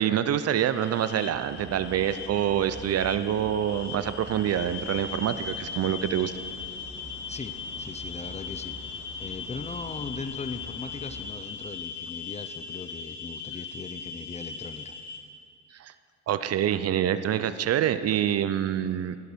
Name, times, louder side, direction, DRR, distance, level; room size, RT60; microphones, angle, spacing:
voice 1, 0.0-6.3 15.8-15.9 16.3-19.2, right 10 dB, 55° right, 12 dB, 0.5 m, -26 dB
sound 1, 0.7-15.2, left 6 dB, 70° left, 1.4 m, -39 dB
sound 2, 1.3-11.3, equal, 45° left, 2.4 m, -46 dB
voice 2, 7.3-15.0, left 4 dB, 20° left, 9 dB, 0.5 m, -39 dB
15.0 x 6.5 x 5.2 m, 2.3 s
cardioid pair, 90°, 30 cm